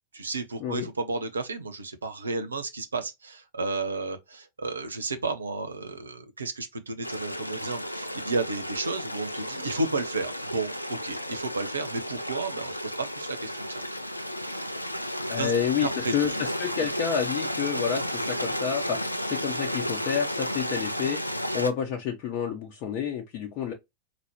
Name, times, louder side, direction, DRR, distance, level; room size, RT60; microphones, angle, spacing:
voice 1, 0.1-13.8 15.4-15.5 15.8-16.4, right 3 dB, 75° right, 0.8 m, -32 dB
Stream, 7.0-21.7, equal, 90° left, 0.4 m, -33 dB
voice 2, 15.3-19.0 19.2-23.7, left 7 dB, 40° left, 0.8 m, -29 dB
4.1 x 3.0 x 2.9 m
figure-of-eight pair, 90°, 0 cm